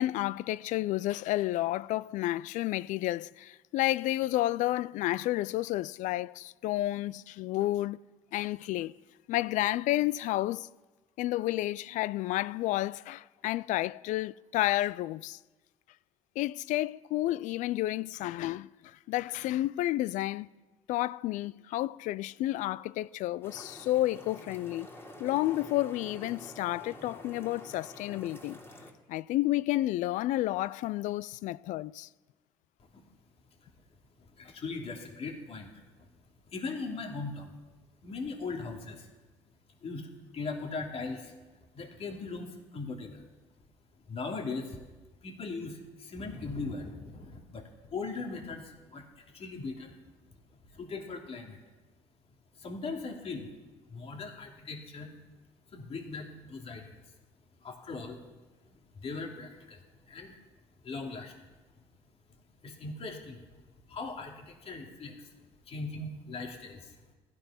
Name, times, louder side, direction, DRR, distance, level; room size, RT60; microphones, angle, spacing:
voice 1, 0.0-8.0 8.3-8.9 9.3-10.7 11.2-15.4 16.4-20.5 20.9-24.9 25.2-28.6 29.1-32.1, left 16 dB, 70° left, 0.4 m, -31 dB
sound 1, 23.4-28.9, left 1 dB, 20° left, 3.3 m, -48 dB
voice 2, 34.2-36.1 36.5-37.6 38.0-39.1 39.8-43.3 44.0-44.8 45.2-49.9 50.7-51.6 52.5-53.5 53.8-55.1 55.7-57.0 57.6-58.2 58.9-60.4 60.8-61.3 62.6-63.4 63.9-67.0, left 3 dB, 50° left, 2.7 m, -39 dB
16.0 x 13.5 x 5.7 m
supercardioid pair, 75°, 13 cm